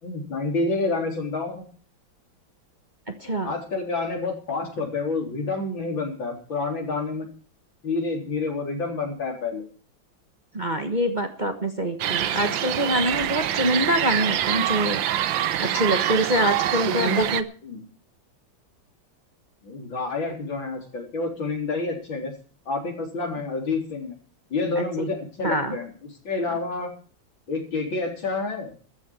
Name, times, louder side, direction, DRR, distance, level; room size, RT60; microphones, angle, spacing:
voice 1, 0.0-1.6 3.4-7.3 7.8-9.7 16.9-17.3 17.6-17.8 19.6-22.3 22.7-24.1 24.5-25.9 26.2-26.9 27.5-28.7, left 3 dB, 80° left, 1 dB, 4.7 m, -28 dB
voice 2, 3.2-3.5 10.5-15.0 15.6-17.4 24.8-25.1 25.4-25.8, right 1 dB, 25° right, 5 dB, 1.3 m, -25 dB
sound 1, 12.0-17.4, right 11 dB, 80° right, 1.6 m, -25 dB
14.0 x 7.7 x 8.8 m, 0.40 s
omnidirectional pair, 2.1 m